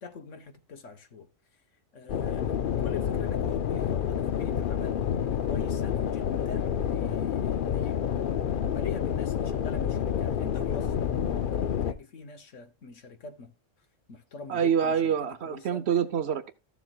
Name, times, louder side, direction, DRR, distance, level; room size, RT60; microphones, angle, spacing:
voice 1, 0.0-1.3 1.9-5.0 5.4-8.1 8.6-13.5 14.1-15.9, left 4 dB, 75° left, 1.4 m, -44 dB
sound 1, 2.1-11.9, left 8 dB, 55° left, 0.6 m, -28 dB
voice 2, 14.5-16.5, right 8 dB, 60° right, 0.9 m, -26 dB
14.0 x 7.1 x 2.3 m
omnidirectional pair, 1.3 m